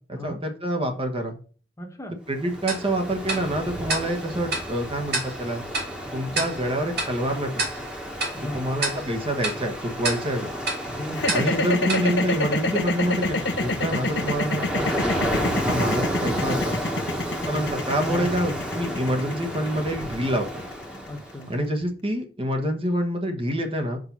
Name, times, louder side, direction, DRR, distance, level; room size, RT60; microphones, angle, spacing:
voice 1, 0.1-1.3 2.3-5.6 6.1-7.5 8.5-10.5 11.3-16.8 17.4-20.6 21.5-24.0, right 1 dB, 30° right, 3 dB, 1.3 m, -27 dB
voice 2, 1.8-2.1 8.3-8.7 10.9-11.3 18.0-18.8 21.1-21.5, left 1 dB, 15° left, 3 dB, 1.3 m, -36 dB
Ocean, 2.3-21.5, equal, 5° right, 1.5 m, -31 dB
Tick-tock, 2.7-13.1, right 2 dB, 65° right, 2.4 m, -32 dB
sound 1, 11.1-21.3, left 2 dB, 75° left, 0.9 m, -27 dB
5.8 x 5.3 x 5.3 m, 0.39 s
head